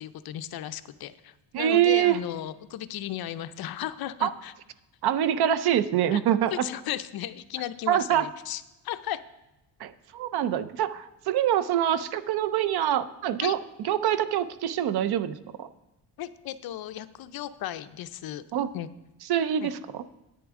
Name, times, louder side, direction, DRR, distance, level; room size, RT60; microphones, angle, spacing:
voice 1, 0.0-4.5 6.1-6.2 6.5-9.2 13.4-13.6 16.2-18.4 18.7-18.9 19.6-19.7, left 12 dB, 60° left, 12 dB, 0.5 m, -35 dB
voice 2, 1.5-2.2 4.2-4.3 5.0-6.5 7.9-8.3 9.8-15.7 18.5-18.7 19.3-20.0, right 11 dB, 65° right, 13 dB, 0.6 m, -25 dB
10.0 x 8.8 x 3.6 m, 0.97 s
cardioid pair, 165°, 41 cm